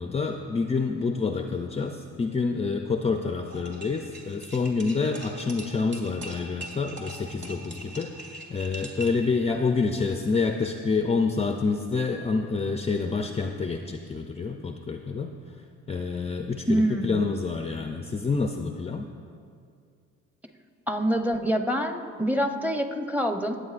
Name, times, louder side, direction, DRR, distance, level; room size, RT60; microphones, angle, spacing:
voice 1, 0.0-15.3 15.9-19.1, left 4 dB, 20° left, 4 dB, 0.4 m, -28 dB
sound 1, 3.5-9.3, right 2 dB, 35° right, 1.8 m, -42 dB
voice 2, 16.7-17.2 20.9-23.6, equal, 5° right, 5 dB, 0.8 m, -26 dB
20.0 x 7.9 x 2.5 m, 2.3 s
cardioid pair, 90°, 30 cm